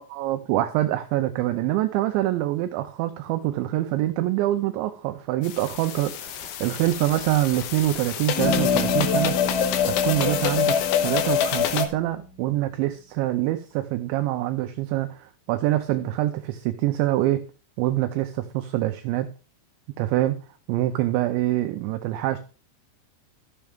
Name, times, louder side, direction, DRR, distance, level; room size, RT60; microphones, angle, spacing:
voice 1, 0.0-9.4 9.9-17.4 17.8-19.3 20.0-20.4 20.7-22.4, right 15 dB, 85° right, 8 dB, 2.6 m, -25 dB
sound 1, 5.4-11.9, left 9 dB, 80° left, 3.3 m, -25 dB
Bass guitar, 8.4-12.1, left 1 dB, 60° left, 1.1 m, -30 dB
14.0 x 7.4 x 3.5 m, 0.37 s
omnidirectional pair, 5.8 m